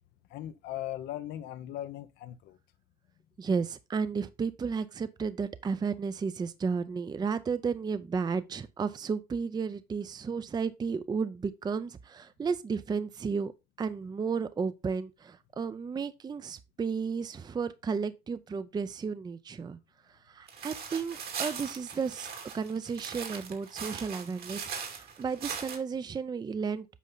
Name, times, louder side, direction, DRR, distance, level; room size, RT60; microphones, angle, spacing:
voice 1, 0.3-2.6, left 12 dB, 80° left, 0.7 m, -39 dB
voice 2, 3.4-13.5 13.8-19.8 20.3-22.3 22.5-26.9, right 5 dB, 25° right, 0.5 m, -33 dB
sound 1, 20.5-25.8, right 6 dB, 65° right, 2.5 m, -40 dB
8.3 x 5.4 x 3.9 m
cardioid pair, 110°, 17 cm